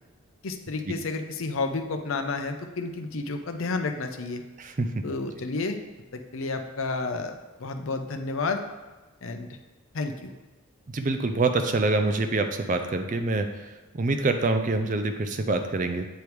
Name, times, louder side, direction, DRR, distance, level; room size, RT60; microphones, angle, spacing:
voice 1, 0.4-4.4 5.0-5.8 6.1-8.6 9.2-9.5 9.9-10.3, left 3 dB, 70° left, 5 dB, 0.6 m, -31 dB
voice 2, 10.9-13.7 13.9-16.0, right 3 dB, 35° right, 7 dB, 0.4 m, -25 dB
8.1 x 3.4 x 4.6 m, 1.2 s
head